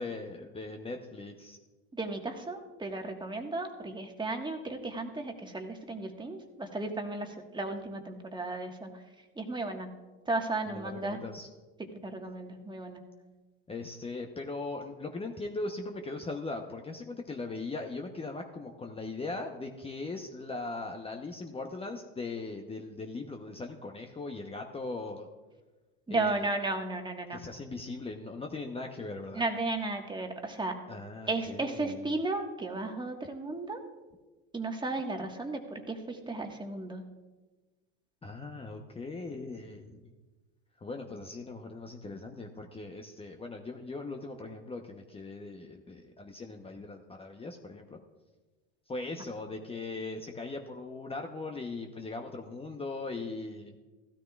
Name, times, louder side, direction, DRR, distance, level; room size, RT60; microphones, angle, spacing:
voice 1, 0.0-1.6 10.7-11.5 13.7-25.3 26.1-26.5 27.3-29.4 30.9-32.1 38.2-40.1 40.8-48.0 48.9-53.8, left 3 dB, 20° left, 3 dB, 0.9 m, -39 dB
voice 2, 1.9-8.9 9.4-9.9 10.3-11.2 12.0-13.0 26.1-27.4 29.3-30.7 31.3-33.8 34.5-37.0, right 2 dB, 15° right, 4 dB, 1.5 m, -34 dB
15.5 x 13.0 x 2.4 m, 1.2 s
hypercardioid pair, 90°, 32 cm